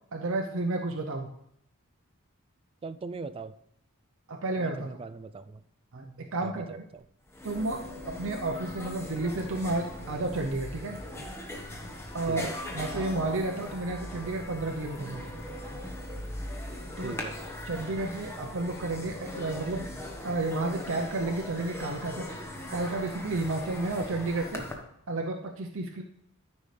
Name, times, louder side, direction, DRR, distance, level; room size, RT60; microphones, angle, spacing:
voice 1, 0.1-1.3 4.3-4.9 5.9-6.8 7.4-11.0 12.1-15.3 17.0-17.1 17.7-19.9 20.2-22.3 22.7-24.7 25.1-26.0, right 2 dB, 60° right, 2 dB, 0.7 m, -32 dB
voice 2, 2.8-3.5 4.6-5.6 6.4-7.0 12.3-12.6 17.0-17.4, right 3 dB, 25° right, 13 dB, 0.3 m, -40 dB
sound 1, 7.0-7.1 7.3-24.7, left 1 dB, 10° left, 1.0 m, -39 dB
13.5 x 5.4 x 3.3 m, 0.73 s
head